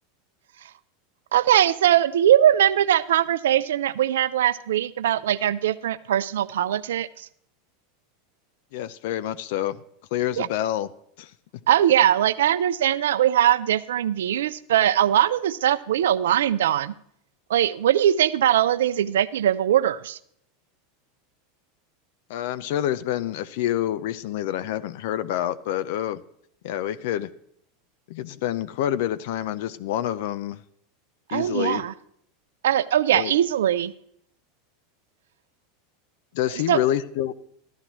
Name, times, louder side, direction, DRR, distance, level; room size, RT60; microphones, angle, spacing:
voice 1, 1.3-7.3 10.4-10.5 11.7-16.9 17.5-20.2 31.3-31.9 32.6-33.9 36.7-36.8, right 11 dB, 80° right, 15 dB, 0.4 m, -21 dB
voice 2, 8.7-9.8 10.1-10.9 11.2-11.3 22.3-26.2 26.6-27.3 28.1-30.6 31.3-31.8 33.1-33.3 36.3-37.3, left 12 dB, 70° left, 16 dB, 0.4 m, -27 dB
13.5 x 12.5 x 3.0 m, 0.68 s
hypercardioid pair, 100°, 0 cm